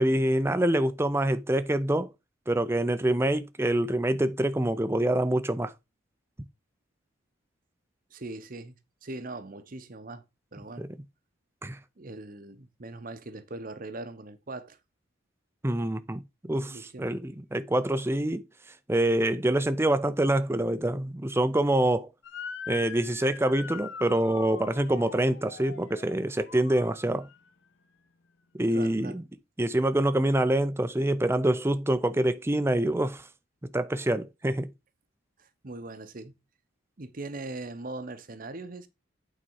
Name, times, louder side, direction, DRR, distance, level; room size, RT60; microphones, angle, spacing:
voice 1, 0.0-2.1 2.5-5.7 10.8-10.9 11.6-11.8 15.6-18.4 18.9-22.1 22.7-27.3 28.6-29.2 29.6-33.3 33.7-34.7, right 1 dB, 10° right, 0.5 m, -26 dB
voice 2, 8.1-8.8 9.0-10.2 10.5-10.9 12.0-14.8 16.6-17.2 28.7-29.2 35.4-36.4 37.0-38.9, right 2 dB, 40° right, 0.8 m, -40 dB
Motor vehicle (road) / Siren, 22.2-27.5, left 6 dB, 55° left, 0.6 m, -42 dB
8.7 x 4.1 x 4.6 m
head